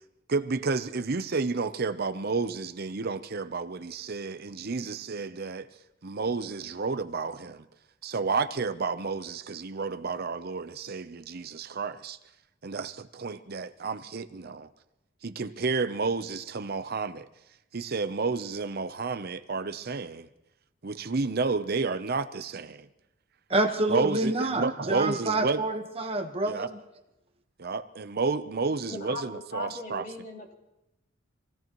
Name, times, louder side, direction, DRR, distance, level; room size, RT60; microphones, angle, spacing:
voice 1, 0.3-5.7 6.0-7.6 8.0-12.2 12.6-14.7 15.2-17.3 17.7-20.3 20.8-22.9 23.9-25.6 26.5-26.7 27.6-30.1, right 4 dB, 50° right, 11 dB, 0.7 m, -31 dB
voice 2, 23.5-26.7, right 2 dB, 30° right, 5 dB, 1.2 m, -27 dB
voice 3, 28.9-30.5, left 2 dB, 45° left, -1 dB, 3.6 m, -38 dB
26.5 x 17.0 x 3.0 m, 0.91 s
head